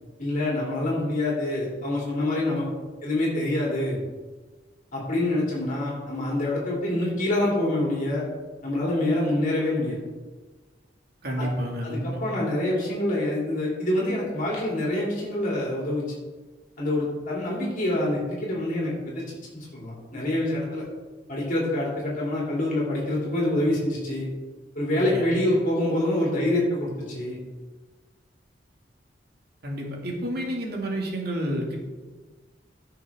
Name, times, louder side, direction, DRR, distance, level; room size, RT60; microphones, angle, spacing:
voice 1, 0.2-2.7 3.0-4.0 4.9-8.3 8.6-10.0 11.4-11.5 11.8-16.0 16.8-19.2 19.5-20.9 21.3-24.3 24.7-27.4, left 1 dB, 45° left, -4 dB, 3.1 m, -26 dB
voice 2, 11.2-12.2 25.0-25.3 29.6-31.8, equal, 60° right, -1 dB, 2.3 m, -30 dB
16.0 x 6.4 x 3.7 m, 1.3 s
head